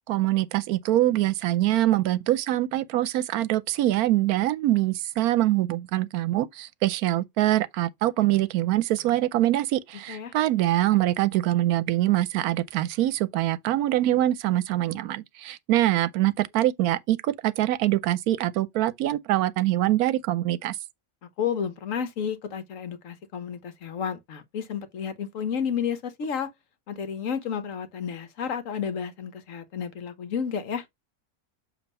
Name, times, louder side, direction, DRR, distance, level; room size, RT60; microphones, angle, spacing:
voice 1, 0.1-20.8, right 14 dB, 80° right, 1.1 m, -24 dB
voice 2, 21.4-26.5 26.9-30.8, left 7 dB, 65° left, 1.2 m, -31 dB
7.1 x 2.9 x 5.3 m
omnidirectional pair, 1.6 m